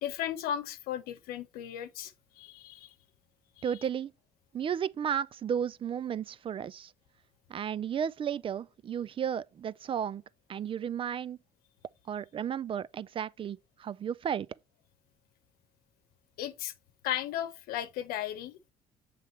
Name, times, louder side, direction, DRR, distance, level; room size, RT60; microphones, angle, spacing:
voice 1, 0.0-2.9 3.6-3.7 16.4-16.7 17.0-18.7, left 11 dB, 90° left, 0.9 m, -36 dB
voice 2, 3.6-4.1 4.5-6.9 7.5-10.2 10.5-11.4 12.1-14.5, right 8 dB, 35° right, 0.4 m, -33 dB
7.5 x 3.3 x 4.3 m
cardioid pair, 110°, 15 cm